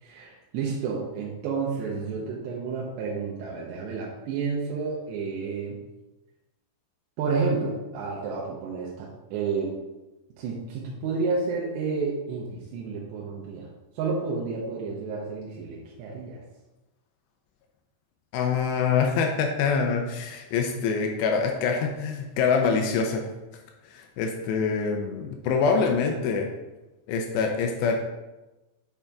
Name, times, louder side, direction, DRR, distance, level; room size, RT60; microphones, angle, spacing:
voice 1, 0.0-5.8 7.2-9.8 10.4-13.7 14.0-16.4, right 4 dB, 75° right, -4 dB, 2.7 m, -30 dB
voice 2, 18.3-23.2 23.9-26.5 27.1-27.9, left 5 dB, 80° left, 2 dB, 2.5 m, -25 dB
8.8 x 4.3 x 3.5 m, 1.1 s
omnidirectional pair, 5.7 m